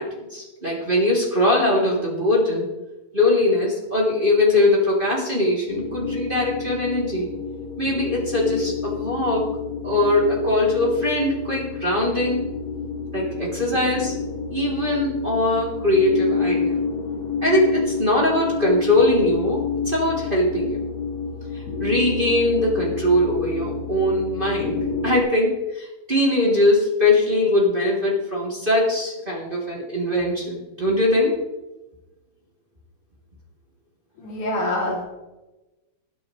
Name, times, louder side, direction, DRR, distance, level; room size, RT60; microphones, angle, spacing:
voice 1, 0.0-2.7 3.1-7.3 7.8-9.5 9.8-12.4 13.1-14.1 14.5-16.8 17.4-20.8 21.5-31.4, left 1 dB, 15° right, -5 dB, 3.4 m, -21 dB
sound 1, 5.7-25.2, left 5 dB, 55° left, 1.5 m, -29 dB
voice 2, 34.2-35.0, left 1 dB, 70° left, -3 dB, 4.8 m, -25 dB
21.0 x 9.5 x 3.4 m, 1.0 s
omnidirectional pair, 3.7 m